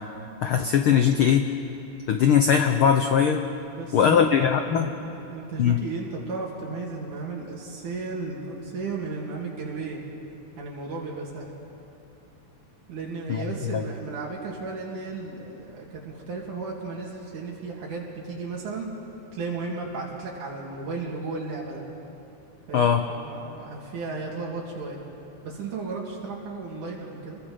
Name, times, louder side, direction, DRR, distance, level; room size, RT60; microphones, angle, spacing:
voice 1, 0.4-1.5 2.1-3.4 3.9-4.9 5.6-5.8 13.3-13.4 22.7-23.0, left 8 dB, 85° left, 6 dB, 1.1 m, -20 dB
voice 2, 3.8-4.3 4.8-10.0 10.6-11.5 12.9-18.9 19.3-21.8 22.7-25.0 25.4-27.4, right 3 dB, 75° right, -3 dB, 3.6 m, -34 dB
28.5 x 22.5 x 5.1 m, 2.9 s
omnidirectional pair, 3.5 m